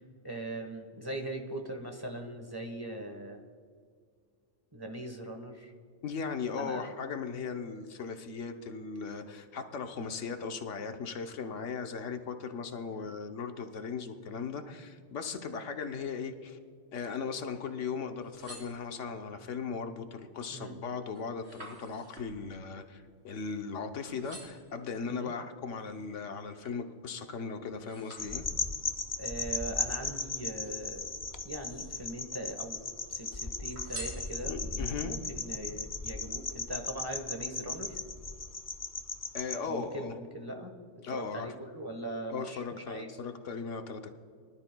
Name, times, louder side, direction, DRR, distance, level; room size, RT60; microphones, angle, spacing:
voice 1, 0.2-3.4 4.7-5.7 6.6-6.8 12.9-13.1 20.5-20.8 25.1-25.3 29.2-31.1 31.4-32.8 33.1-38.0 39.7-40.7 41.1-43.2, right 1 dB, 20° right, 3 dB, 1.1 m, -40 dB
voice 2, 6.0-16.6 16.9-28.4 34.5-35.1 39.3-40.1 41.0-41.5 42.3-44.1, left 5 dB, 75° left, 6 dB, 1.2 m, -38 dB
sound 1, 18.0-19.3 19.9-20.3 20.7-23.8 24.1-24.8 25.4-26.9 27.3-28.8 29.7-30.9 31.4-32.2 32.5-33.3 33.7-34.8 35.3-35.4, right 2 dB, 60° right, 3.9 m, -50 dB
sound 2, 28.2-39.6, left 3 dB, 35° left, 0.3 m, -37 dB
23.5 x 12.0 x 2.2 m, 2.1 s
omnidirectional pair, 1.3 m